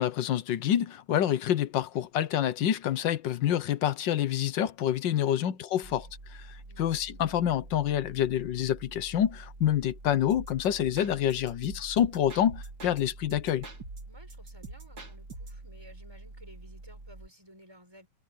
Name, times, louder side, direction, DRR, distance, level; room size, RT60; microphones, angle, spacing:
voice 1, 0.0-13.7, left 10 dB, 85° left, 1.6 m, -27 dB
voice 2, 5.3-6.1 6.6-7.0 14.1-18.1, equal, 15° right, 6.9 m, -56 dB
sound 1, 5.8-17.3, right 2 dB, 45° right, 3.1 m, -47 dB
sound 2, 10.3-13.0 13.3-15.6, right 3 dB, 90° right, 4.3 m, -45 dB
omnidirectional pair, 1.9 m